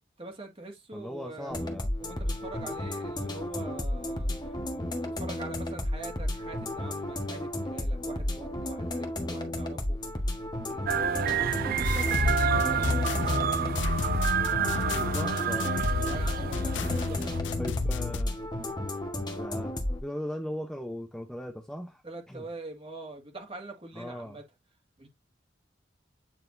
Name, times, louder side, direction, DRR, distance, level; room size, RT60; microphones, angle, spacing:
voice 1, 0.2-1.7 2.0-10.0 10.7-13.7 16.0-17.4 22.0-24.4 25.0-25.1, right 2 dB, 30° right, 2.1 m, -44 dB
voice 2, 0.9-1.9 14.9-15.7 17.6-18.4 19.4-22.0 22.3-22.4 23.9-24.4, equal, 5° left, 0.8 m, -38 dB
sound 1, 1.5-20.0, left 1 dB, 25° left, 1.4 m, -33 dB
sound 2, 10.9-17.4, right 8 dB, 50° right, 0.4 m, -29 dB
sound 3, 11.8-18.2, left 5 dB, 75° left, 0.5 m, -31 dB
9.0 x 4.1 x 2.7 m
head